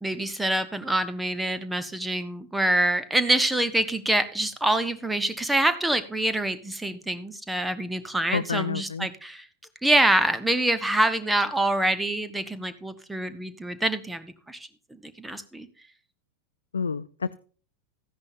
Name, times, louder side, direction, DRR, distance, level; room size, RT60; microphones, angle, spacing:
voice 1, 0.0-9.5 9.8-14.7 15.2-15.7, right 1 dB, 5° right, 11 dB, 1.1 m, -25 dB
voice 2, 8.3-9.1 16.7-17.3, left 5 dB, 75° left, 12 dB, 0.4 m, -29 dB
14.0 x 10.5 x 2.7 m, 0.39 s
figure-of-eight pair, 90°, 0 cm